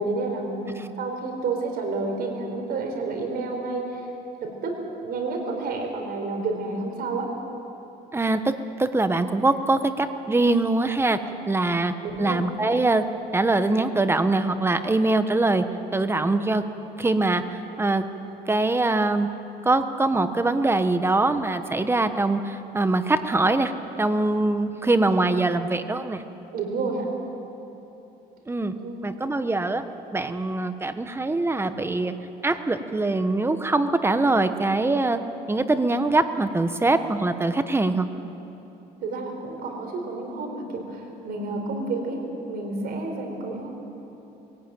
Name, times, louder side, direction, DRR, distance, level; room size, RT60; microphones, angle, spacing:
voice 1, 0.0-0.7 0.9-4.0 4.4-4.7 5.0-7.3 12.0-12.4 26.5-27.1 28.8-29.0 39.0-42.2 42.5-43.7, right 3 dB, 65° right, 2 dB, 4.7 m, -30 dB
voice 2, 8.1-8.5 8.8-11.2 11.5-13.0 13.3-15.6 15.9-16.6 17.0-18.0 18.5-19.3 19.6-23.7 24.0-26.2 28.5-28.7 29.0-29.8 30.1-32.1 32.4-35.2 35.5-38.1, right 2 dB, 15° right, 9 dB, 1.2 m, -23 dB
22.0 x 17.0 x 9.1 m, 3.0 s
cardioid pair, 110°, 17 cm